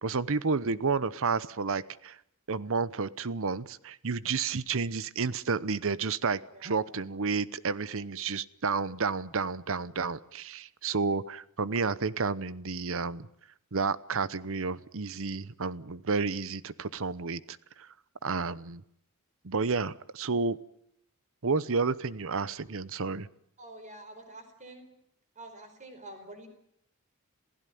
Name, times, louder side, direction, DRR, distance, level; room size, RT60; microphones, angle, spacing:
voice 1, 0.0-2.2 2.5-13.3 13.7-17.9 18.2-18.8 19.4-20.6 21.4-23.3, right 4 dB, 65° right, 17 dB, 0.9 m, -31 dB
voice 2, 6.5-6.9 23.6-24.9 25.3-26.5, right 1 dB, 35° right, 8 dB, 5.0 m, -47 dB
28.0 x 16.0 x 9.3 m, 0.75 s
head